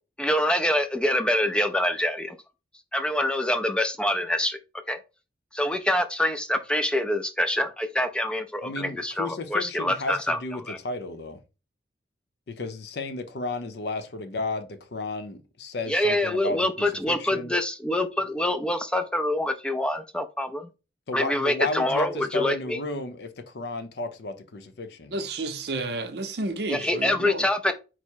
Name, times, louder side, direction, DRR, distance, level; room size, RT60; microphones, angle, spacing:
voice 1, 0.2-2.4 2.9-4.6 4.9-5.0 5.5-10.4 10.7-10.8 15.9-20.7 21.1-22.8 26.7-27.7, left 1 dB, 5° left, 0.4 m, -25 dB
voice 2, 8.6-11.4 12.5-17.5 21.1-25.1, left 2 dB, 60° left, 0.6 m, -33 dB
voice 3, 25.1-27.5, right 2 dB, 60° right, 0.6 m, -31 dB
4.7 x 2.0 x 4.3 m
head